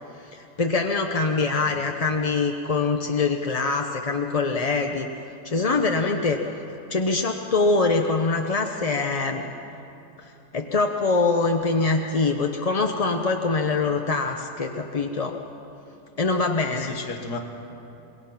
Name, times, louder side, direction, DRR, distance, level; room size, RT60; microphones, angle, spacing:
voice 1, 0.2-5.1 5.4-6.4 6.9-9.4 10.2-15.4 16.2-17.0, left 3 dB, 35° left, 3 dB, 0.6 m, -24 dB
voice 2, 16.7-17.4, left 3 dB, 75° left, 4 dB, 2.1 m, -35 dB
27.0 x 21.5 x 5.9 m, 2.9 s
omnidirectional pair, 1.7 m